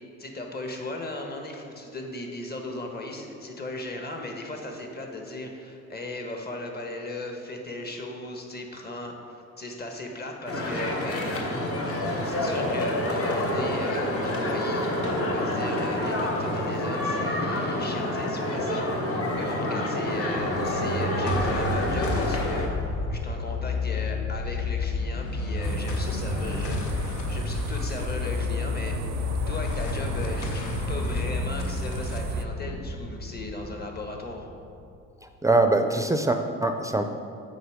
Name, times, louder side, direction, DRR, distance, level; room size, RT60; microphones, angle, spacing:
voice 1, 0.2-11.2 12.2-22.7 23.1-34.5, left 2 dB, 30° left, 2 dB, 1.3 m, -37 dB
sound 1, 10.5-22.7, left 1 dB, 50° left, 1.3 m, -28 dB
sound 2, 20.4-35.0, left 3 dB, 80° left, 0.9 m, -30 dB
sound 3, 25.6-32.5, right 9 dB, 65° right, 0.5 m, -37 dB
voice 2, 35.4-37.0, right 2 dB, 10° right, 6 dB, 0.5 m, -23 dB
8.0 x 5.5 x 5.0 m, 2.5 s
cardioid pair, 90°, 30 cm